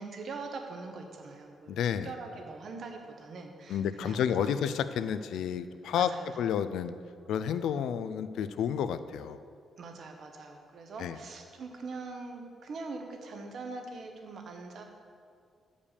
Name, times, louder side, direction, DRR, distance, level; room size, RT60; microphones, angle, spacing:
voice 1, 0.0-1.8 2.0-4.6 5.9-6.3 9.8-14.8, right 3 dB, 45° right, 4 dB, 0.8 m, -42 dB
voice 2, 1.7-2.1 3.7-6.1 6.4-6.9 7.3-9.4 11.0-11.2, left 8 dB, 90° left, 12 dB, 0.3 m, -30 dB
7.1 x 5.2 x 6.6 m, 2.2 s
cardioid pair, 180°, 0 cm